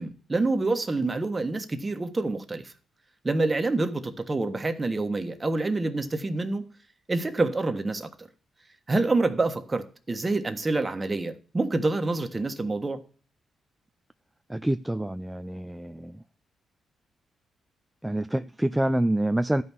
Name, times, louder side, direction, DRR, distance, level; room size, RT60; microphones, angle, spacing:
voice 1, 0.0-2.7 3.2-6.7 7.1-8.1 8.9-13.0, right 2 dB, 25° right, 1.3 m, -27 dB
voice 2, 14.5-16.2 18.0-19.6, right 1 dB, 10° right, 0.4 m, -27 dB
12.0 x 5.5 x 6.1 m
cardioid pair, 65°, 0 cm